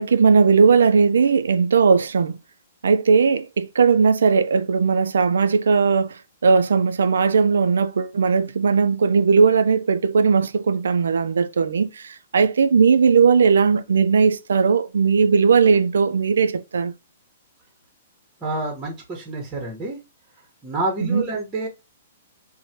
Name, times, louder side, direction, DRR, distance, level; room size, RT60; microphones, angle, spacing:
voice 1, 0.0-2.4 2.8-6.1 6.4-11.9 12.3-16.9 21.1-21.2, right 5 dB, 85° right, 0.4 m, -18 dB
voice 2, 18.4-20.0 20.6-21.7, right 2 dB, 15° right, 0.9 m, -28 dB
3.1 x 2.1 x 2.7 m
hypercardioid pair, 140°, 0 cm